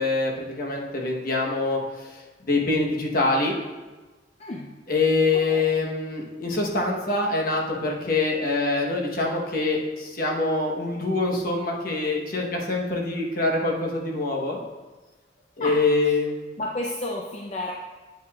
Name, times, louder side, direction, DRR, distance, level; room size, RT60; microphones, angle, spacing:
voice 1, 0.0-3.5 4.9-14.6 15.6-16.5, left 3 dB, 55° left, 0 dB, 1.0 m, -25 dB
voice 2, 16.6-17.7, left 1 dB, 35° left, -2 dB, 0.5 m, -31 dB
8.1 x 7.4 x 2.3 m, 1.2 s
head